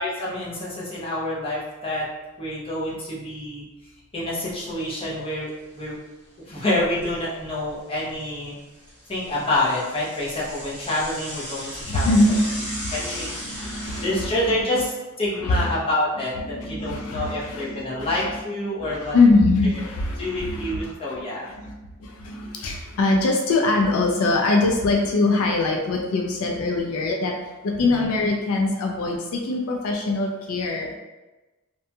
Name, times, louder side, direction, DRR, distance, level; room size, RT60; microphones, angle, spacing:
voice 1, 0.0-2.1 2.4-3.7 4.1-6.0 6.5-8.6 9.1-12.1 12.9-13.3 14.0-19.2 20.2-21.5 27.8-28.1, left 1 dB, 25° left, -6 dB, 0.7 m, -27 dB
Bicycle / Mechanisms, 4.7-5.1 5.5-5.6 5.8-5.9 6.6-7.8 8.1-14.0, equal, 5° left, 1.4 m, -37 dB
voice 2, 11.8-14.8 15.3-15.7 16.4-18.4 18.8-21.7 22.0-27.4 27.6-31.0, left 2 dB, 75° left, 1 dB, 0.3 m, -23 dB
2.6 x 2.2 x 2.6 m, 1.1 s
head